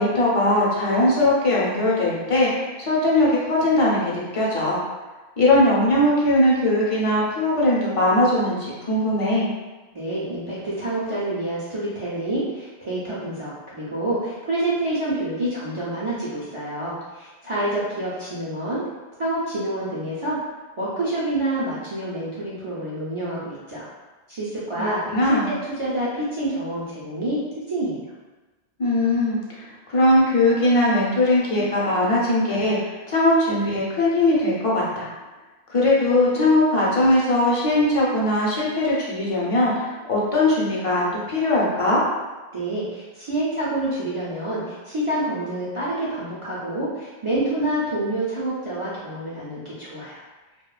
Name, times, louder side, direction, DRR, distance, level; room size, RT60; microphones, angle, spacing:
voice 1, 0.0-4.8 5.4-9.5 24.8-25.5 28.8-35.1 35.7-42.0, left 1 dB, 40° left, -6 dB, 0.5 m, -20 dB
voice 2, 9.9-18.8 19.2-20.4 20.8-23.9 24.3-27.4 27.7-28.0 42.5-50.2, right 1 dB, 50° right, -8 dB, 0.4 m, -27 dB
2.6 x 2.1 x 2.3 m, 1.2 s
omnidirectional pair, 1.0 m